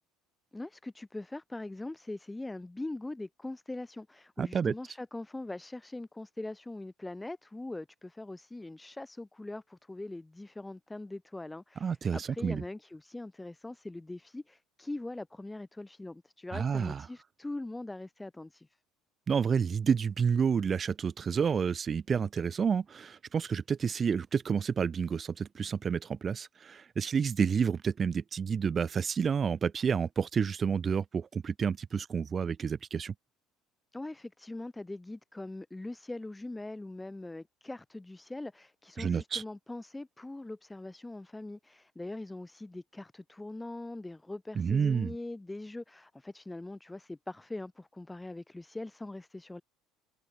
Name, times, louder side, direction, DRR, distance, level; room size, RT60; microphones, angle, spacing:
voice 1, 0.5-18.8 33.9-49.6, left 2 dB, 10° left, 1.2 m, -42 dB
voice 2, 4.4-4.7 11.8-12.6 16.5-17.0 19.3-33.1 39.0-39.4 44.6-45.1, right 6 dB, 35° right, 1.6 m, -29 dB
supercardioid pair, 100°, 0 cm